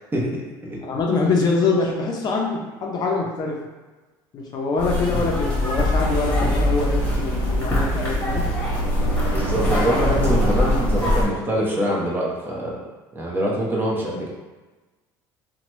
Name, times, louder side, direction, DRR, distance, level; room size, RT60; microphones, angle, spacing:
voice 1, 0.8-3.6 4.3-8.4, left 3 dB, 45° left, -1 dB, 0.5 m, -24 dB
sound 1, 4.8-11.3, left 1 dB, 15° left, 1.2 m, -22 dB
voice 2, 9.3-12.8 13.1-14.3, equal, 20° right, -3 dB, 0.8 m, -24 dB
2.9 x 2.2 x 3.0 m, 1.2 s
supercardioid pair, 95°, 10 cm